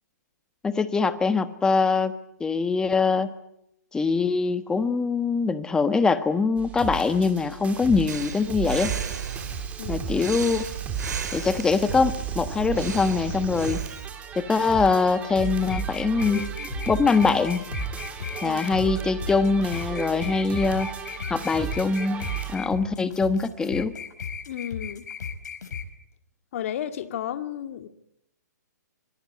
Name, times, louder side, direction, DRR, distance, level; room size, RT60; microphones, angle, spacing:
voice 1, 0.6-2.1 2.4-3.3 3.9-8.9 9.9-10.7 11.3-13.8 14.3-16.5 16.9-17.6 18.4-20.9 21.3-23.9, left 4 dB, 5° left, 12 dB, 1.2 m, -23 dB
sound 1, 6.6-22.6, right 8 dB, 15° right, 3.2 m, -34 dB
Breathing, 8.1-14.1, right 6 dB, 70° right, 5.9 m, -36 dB
sound 2, 15.3-25.8, left 6 dB, 70° left, 4.7 m, -36 dB
voice 2, 24.5-25.1 26.5-27.9, left 10 dB, 50° left, 10 dB, 2.0 m, -33 dB
25.0 x 21.5 x 9.5 m, 0.79 s
hypercardioid pair, 155°, 10 cm